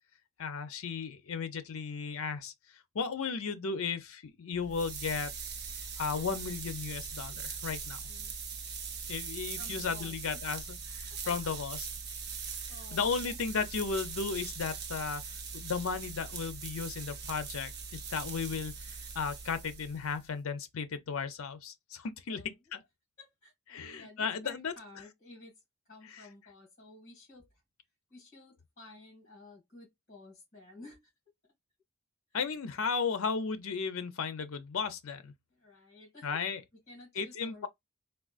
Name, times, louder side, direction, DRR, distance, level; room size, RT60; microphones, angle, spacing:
voice 1, 0.4-2.5 2.9-5.3 6.0-8.0 9.1-11.9 12.9-15.2 15.5-22.4 22.7-22.8 23.7-24.7 32.3-35.3 36.2-36.6 37.2-37.7, left 5 dB, 70° left, 0.5 m, -35 dB
sound 1, 4.5-20.3, right 5 dB, 50° right, 0.6 m, -41 dB
voice 2, 9.6-10.4 11.1-11.5 12.2-13.3 22.3-22.6 23.2-25.6 25.9-27.6 28.1-31.1 32.3-32.4 35.5-36.4 36.9-37.7, left 2 dB, 40° left, 1.8 m, -54 dB
3.6 x 2.2 x 2.4 m
head